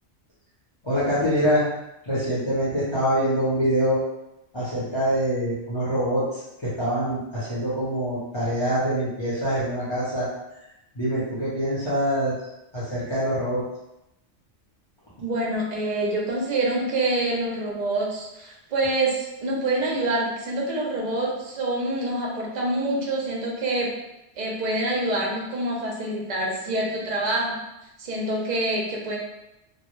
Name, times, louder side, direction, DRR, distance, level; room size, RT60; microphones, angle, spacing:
voice 1, 0.8-1.7 2.1-4.0 4.5-6.2 6.8-10.3 10.9-12.3 12.7-13.6, equal, 30° left, -10 dB, 0.5 m, -24 dB
voice 2, 15.2-23.9 24.4-27.6 28.0-29.2, right 2 dB, 50° right, -3 dB, 0.5 m, -26 dB
2.1 x 2.1 x 3.0 m, 0.91 s
omnidirectional pair, 1.3 m